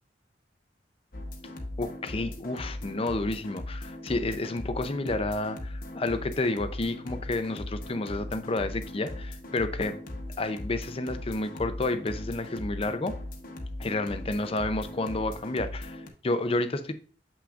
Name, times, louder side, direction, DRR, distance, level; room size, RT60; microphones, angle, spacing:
sound 1, 1.1-16.1, left 1 dB, 50° left, 1.0 m, -39 dB
voice 1, 1.8-10.0 10.4-13.2 13.8-16.9, left 2 dB, 30° left, 0.5 m, -30 dB
7.4 x 5.8 x 2.5 m
head